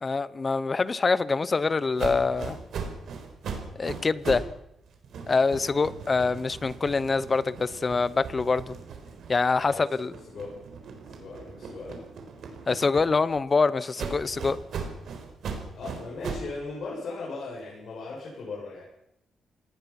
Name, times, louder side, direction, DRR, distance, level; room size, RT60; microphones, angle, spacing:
voice 1, 0.0-2.6 3.8-4.5 5.3-8.7 9.3-10.1 12.7-14.6, left 4 dB, 30° left, 18 dB, 0.8 m, -25 dB
sound 1, 2.0-4.6 4.9-9.6 10.1-13.4 14.0-16.6, right 5 dB, 70° right, 4.3 m, -38 dB
voice 2, 9.6-10.6 11.1-12.0 15.8-18.8, left 3 dB, 55° left, -4 dB, 7.4 m, -38 dB
26.0 x 19.0 x 6.0 m, 0.81 s
wide cardioid pair, 145°, 0 cm